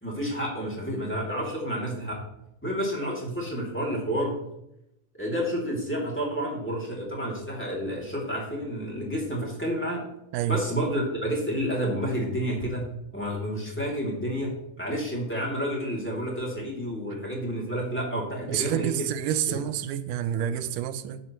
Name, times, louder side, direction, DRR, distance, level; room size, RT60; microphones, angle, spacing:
voice 1, 0.0-2.2 2.6-4.4 5.2-10.0 10.5-12.9 13.1-19.1 19.5-19.6, equal, 5° left, -3 dB, 1.9 m, -30 dB
voice 2, 18.5-21.2, right 10 dB, 80° right, 11 dB, 1.9 m, -28 dB
12.5 x 9.4 x 3.1 m, 0.84 s
omnidirectional pair, 4.2 m